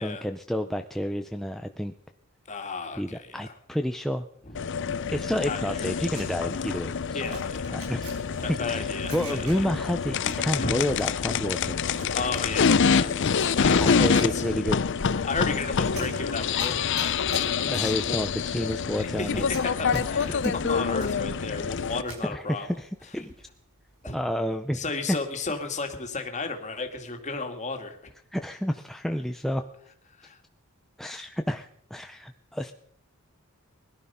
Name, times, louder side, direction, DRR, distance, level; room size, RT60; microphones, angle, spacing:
voice 1, 0.0-1.9 3.0-4.3 5.1-7.2 7.7-8.1 8.7-11.8 13.8-14.8 17.7-19.4 19.9-20.0 20.4-20.5 22.3-23.3 24.1-25.2 28.3-29.6 31.0-32.7, equal, ahead, 5 dB, 0.5 m, -30 dB
voice 2, 2.5-3.5 4.4-4.6 5.4-6.1 7.1-7.8 8.6-9.7 10.6-10.7 12.1-13.1 13.5-14.4 15.2-18.2 18.8-22.7 24.0-24.2 24.7-28.0 30.2-30.4, left 3 dB, 35° left, 5 dB, 2.1 m, -34 dB
sound 1, 4.5-22.0, left 6 dB, 55° left, 0.6 m, -26 dB
sound 2, 6.1-9.9 10.2-11.4 11.7-22.3 22.7-23.5 23.8-24.1, right 1 dB, 85° right, 5.2 m, -43 dB
20.5 x 11.5 x 5.5 m, 0.70 s
head